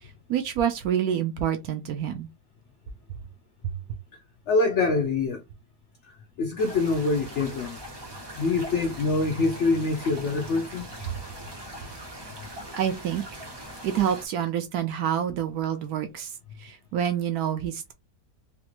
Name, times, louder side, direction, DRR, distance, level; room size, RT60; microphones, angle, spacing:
voice 1, 0.3-2.3 3.6-3.8 11.1-11.2 12.8-13.2 13.8-16.3 16.6-17.9, right 9 dB, 70° right, 1.0 m, -27 dB
voice 2, 4.5-5.4 6.4-7.8 8.4-10.9, left 3 dB, 75° left, 0.6 m, -25 dB
sound 1, 6.6-14.3, right 1 dB, 40° right, 0.3 m, -41 dB
3.2 x 2.5 x 2.9 m
omnidirectional pair, 1.9 m